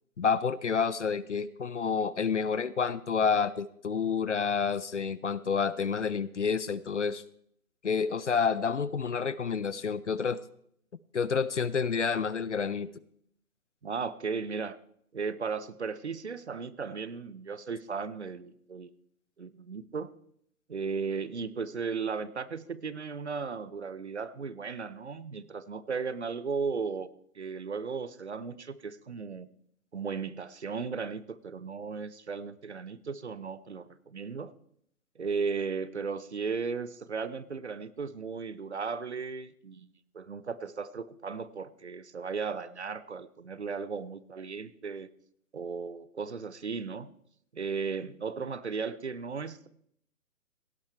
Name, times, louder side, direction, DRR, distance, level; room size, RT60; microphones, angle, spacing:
voice 1, 0.2-7.2 7.8-10.4 11.1-12.9, left 6 dB, 50° left, 18 dB, 0.5 m, -29 dB
voice 2, 13.8-14.8 15.1-18.9 19.4-20.1 20.7-27.1 27.3-29.5 29.9-34.5 35.2-39.9 40.1-45.1 45.5-47.1 47.5-49.7, right 5 dB, 50° right, 17 dB, 0.7 m, -36 dB
17.0 x 10.0 x 4.5 m, 0.69 s
hypercardioid pair, 175°, 45 cm